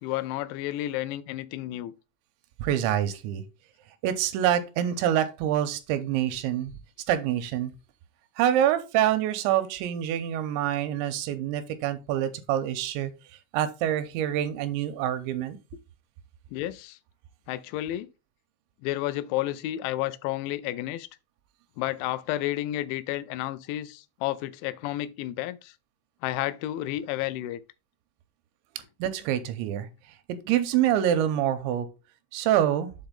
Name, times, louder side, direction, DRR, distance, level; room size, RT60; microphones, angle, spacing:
voice 1, 0.0-1.9 16.5-17.0 17.5-18.1 18.8-21.1 21.8-25.7 26.2-27.6, left 15 dB, 85° left, 2.9 m, -31 dB
voice 2, 2.6-3.4 4.0-6.7 7.1-7.7 8.4-13.1 13.5-15.6 29.0-29.9 30.3-31.9 32.3-32.9, right 11 dB, 85° right, 2.9 m, -26 dB
7.4 x 4.4 x 3.8 m
omnidirectional pair, 5.4 m